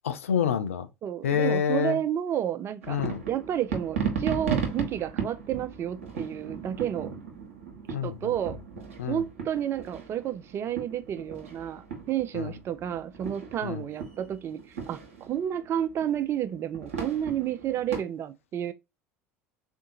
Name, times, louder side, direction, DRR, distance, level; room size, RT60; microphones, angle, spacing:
voice 1, 0.0-0.9 1.2-2.0 2.9-3.2 7.9-8.2 9.0-9.2 12.3-12.5 13.6-13.8, left 8 dB, 75° left, 0.4 m, -27 dB
voice 2, 1.0-3.0 3.3-7.1 8.0-8.6 9.1-18.7, right 10 dB, 35° right, 0.4 m, -31 dB
sound 1, 2.8-18.0, right 6 dB, 70° right, 0.9 m, -36 dB
3.6 x 2.6 x 2.5 m
figure-of-eight pair, 70°, 7 cm